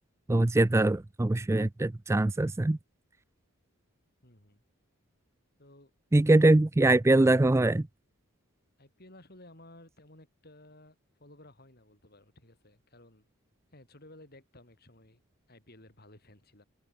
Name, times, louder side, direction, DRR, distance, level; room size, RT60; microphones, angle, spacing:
voice 1, 0.3-2.8 6.1-7.9, right 2 dB, 10° right, 0.3 m, -23 dB
voice 2, 4.2-4.6 5.6-5.9 6.2-6.4 8.8-13.3 13.7-15.2 15.5-16.6, left 1 dB, 45° left, 6.1 m, -55 dB
open air
head